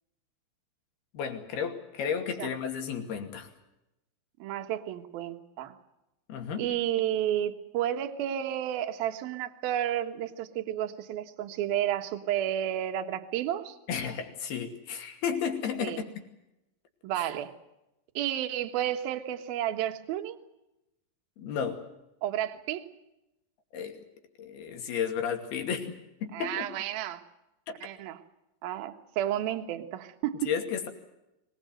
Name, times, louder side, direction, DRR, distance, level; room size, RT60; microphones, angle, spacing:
voice 1, 1.1-3.5 6.3-6.7 13.9-16.1 21.4-21.8 23.7-24.0 24.4-25.9 26.2-26.7 27.7-27.8 30.5-30.9, left 7 dB, 60° left, 5 dB, 4.1 m, -33 dB
voice 2, 4.4-5.8 6.6-13.8 15.8-16.0 17.0-17.5 18.1-20.4 22.2-22.9 26.3-27.2 27.8-28.2 28.6-30.5, right 11 dB, 60° right, 7 dB, 2.9 m, -31 dB
23.5 x 20.5 x 7.9 m, 0.91 s
omnidirectional pair, 5.5 m